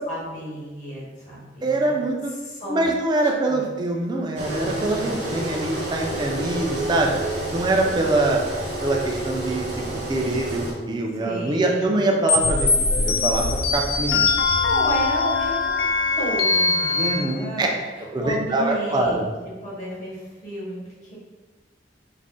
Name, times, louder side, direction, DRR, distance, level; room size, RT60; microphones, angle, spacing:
voice 1, 0.1-2.0 2.4-2.9 3.5-3.6 11.1-12.0 14.6-15.8 16.2-19.3 19.6-21.2, right 1 dB, 45° left, -6 dB, 0.9 m, -32 dB
voice 2, 1.6-2.3 2.7-7.2 7.5-8.4 8.8-9.7 10.1-13.4 13.7-14.3 17.0-17.7 18.1-19.2, right 2 dB, 25° right, 1 dB, 0.3 m, -24 dB
Engine, 4.4-10.7, right 1 dB, 70° right, 0.8 m, -29 dB
sound 1, 12.3-17.2, left 3 dB, 80° left, 0.4 m, -21 dB
2.5 x 2.0 x 3.5 m, 1.3 s
head